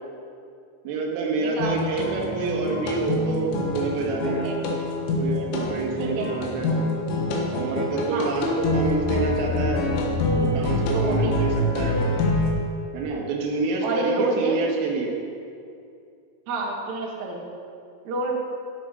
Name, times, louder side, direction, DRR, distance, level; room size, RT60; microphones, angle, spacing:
voice 1, 0.9-4.5 5.2-6.9 7.5-9.8 10.4-12.0 12.9-15.2, right 4 dB, 80° right, -1 dB, 4.1 m, -27 dB
voice 2, 1.4-1.8 4.2-4.6 6.0-6.3 8.1-8.3 10.9-11.4 13.8-14.6 16.5-17.5 18.0-18.3, right 2 dB, 65° right, -2 dB, 1.9 m, -28 dB
sound 1, 1.6-12.5, left 2 dB, 80° left, 4.0 m, -26 dB
16.5 x 6.9 x 5.2 m, 2.5 s
omnidirectional pair, 5.8 m